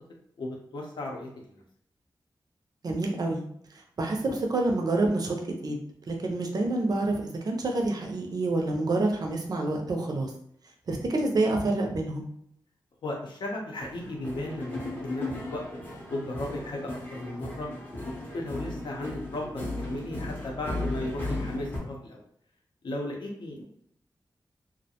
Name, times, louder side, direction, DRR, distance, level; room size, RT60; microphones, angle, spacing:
voice 1, 0.4-1.6 13.0-15.2 15.5-15.6 16.1-17.7 18.3-22.2 22.8-23.6, left 1 dB, 65° left, 0 dB, 0.6 m, -35 dB
voice 2, 2.8-3.4 3.7-5.8 6.1-10.3 10.9-12.3, right 2 dB, 50° right, 1 dB, 0.4 m, -28 dB
sound 1, 13.8-21.8, left 2 dB, 20° left, 0.6 m, -36 dB
2.4 x 2.1 x 2.8 m, 0.67 s
wide cardioid pair, 180°, 8 cm